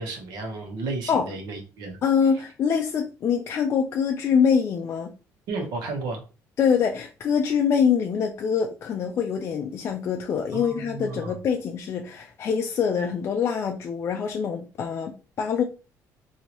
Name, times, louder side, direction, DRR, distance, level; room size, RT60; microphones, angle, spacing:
voice 1, 0.0-2.0 5.5-6.2 10.5-11.4, right 3 dB, 85° right, 1.0 m, -33 dB
voice 2, 2.0-5.1 6.6-15.6, left 7 dB, 40° left, 0.3 m, -24 dB
2.9 x 2.7 x 3.0 m
cardioid pair, 155°, 7 cm